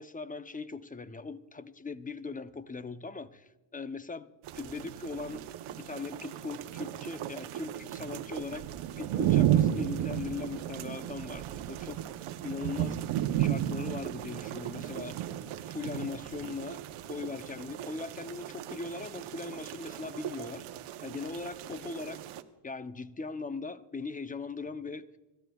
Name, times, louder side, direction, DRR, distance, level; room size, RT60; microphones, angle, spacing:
voice 1, 0.0-4.3 4.6-8.7 9.0-12.0 12.4-13.0 13.3-15.3 15.6-20.7 21.0-22.2 22.6-25.1, left 4 dB, 15° left, 12 dB, 0.6 m, -40 dB
sound 1, 4.4-22.4, right 12 dB, 80° right, 0.9 m, -34 dB
26.0 x 12.5 x 2.3 m, 1.2 s
cardioid pair, 90°, 49 cm